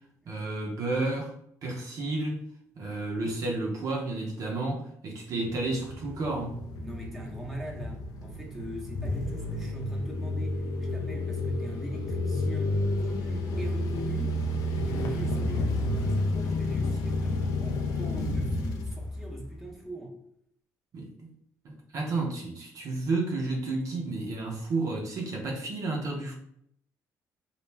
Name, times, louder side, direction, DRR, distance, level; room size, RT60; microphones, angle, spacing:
voice 1, 0.3-1.3 1.6-2.4 2.8-6.6 20.9-21.3 21.6-26.3, right 2 dB, 60° right, 0 dB, 0.6 m, -31 dB
sound 1, 5.4-19.7, left 2 dB, 80° left, 0.4 m, -31 dB
voice 2, 6.8-14.4 14.7-20.2, right 1 dB, 5° right, -2 dB, 0.7 m, -41 dB
2.3 x 2.1 x 3.2 m, 0.69 s
cardioid pair, 90°, 6 cm